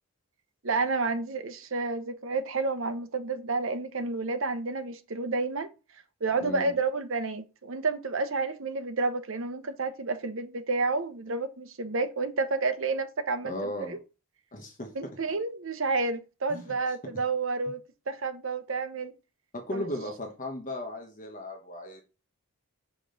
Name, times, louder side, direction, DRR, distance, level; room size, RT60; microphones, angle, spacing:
voice 1, 0.6-5.7 6.2-14.0 14.9-19.1 19.7-19.8, right 3 dB, 60° right, 0.8 m, -30 dB
voice 2, 6.4-6.7 13.4-14.0 14.5-14.9 16.5-16.9 17.7-17.8 19.5-22.0, left 1 dB, 35° left, 1.1 m, -36 dB
6.2 x 5.1 x 3.9 m
head